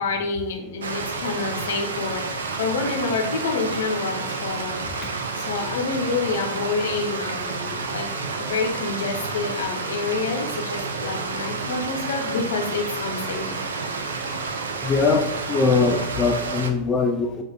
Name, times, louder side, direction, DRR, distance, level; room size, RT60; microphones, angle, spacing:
voice 1, 0.0-4.8 5.3-8.1 8.4-13.6, left 4 dB, 60° left, 4 dB, 0.6 m, -28 dB
Stream, 0.8-16.7, right 4 dB, 65° right, 0.4 m, -30 dB
voice 2, 14.8-17.4, left 4 dB, 25° left, 3 dB, 0.3 m, -22 dB
5.6 x 2.4 x 2.3 m, 0.87 s
figure-of-eight pair, 90°, 0 cm